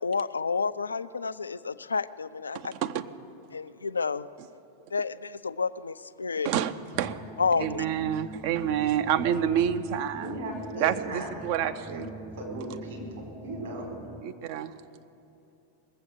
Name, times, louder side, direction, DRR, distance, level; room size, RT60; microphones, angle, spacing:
voice 1, 0.0-2.7 3.5-4.3 4.9-6.5 7.4-7.9, left 5 dB, 75° left, 16 dB, 0.3 m, -30 dB
voice 2, 2.5-3.1 6.4-6.7 7.0-7.2 7.6-10.4 10.8-12.1 14.2-14.7, right 9 dB, 45° right, 11 dB, 0.6 m, -28 dB
sound 1, 6.9-14.2, equal, ahead, 0.5 m, -44 dB
voice 3, 10.2-12.0 12.4-13.9, right 2 dB, 60° right, -1 dB, 4.2 m, -37 dB
19.5 x 7.7 x 7.3 m, 2.8 s
figure-of-eight pair, 90°, 0 cm